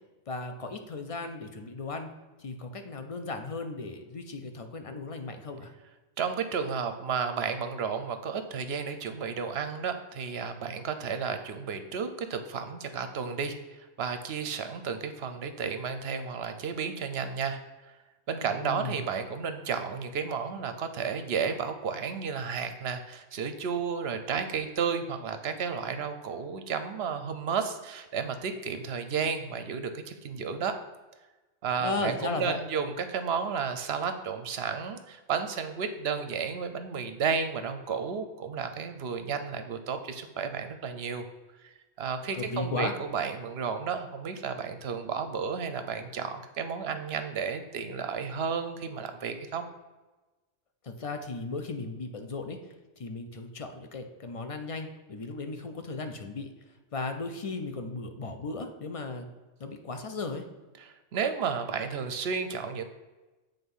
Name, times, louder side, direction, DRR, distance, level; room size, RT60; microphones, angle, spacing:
voice 1, 0.3-2.1 2.4-5.7 18.4-19.0 31.8-32.6 42.3-42.9 50.8-52.6 53.0-56.5 56.9-59.3 59.6-60.4, left 3 dB, 40° left, 6 dB, 0.5 m, -36 dB
voice 2, 6.2-17.9 18.3-30.8 31.6-41.3 41.6-49.7 60.8-62.8, right 6 dB, 65° right, 9 dB, 0.8 m, -32 dB
7.8 x 3.6 x 5.4 m, 1.2 s
omnidirectional pair, 1.3 m